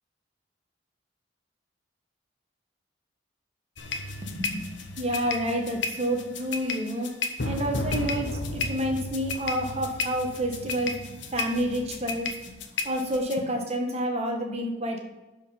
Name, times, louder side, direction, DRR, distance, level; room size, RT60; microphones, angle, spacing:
sound 1, 3.8-13.4, left 3 dB, 75° left, 1.1 m, -33 dB
voice 1, 4.3-7.1 7.4-12.5 12.8-15.0, equal, 35° right, 2 dB, 1.6 m, -29 dB
11.0 x 5.1 x 5.5 m, 1.1 s
head